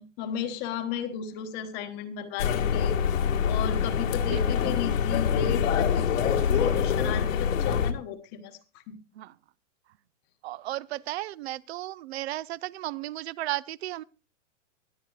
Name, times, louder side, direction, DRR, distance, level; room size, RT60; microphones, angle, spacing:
voice 1, 0.0-3.0 3.4-9.0, left 8 dB, 25° left, 1.0 m, -35 dB
sound 1, 2.4-7.9, left 7 dB, 85° left, 2.0 m, -25 dB
voice 2, 6.4-6.8 9.1-9.3 10.4-14.0, right 16 dB, 55° right, 0.6 m, -35 dB
24.0 x 9.2 x 2.3 m
hypercardioid pair, 160°, 38 cm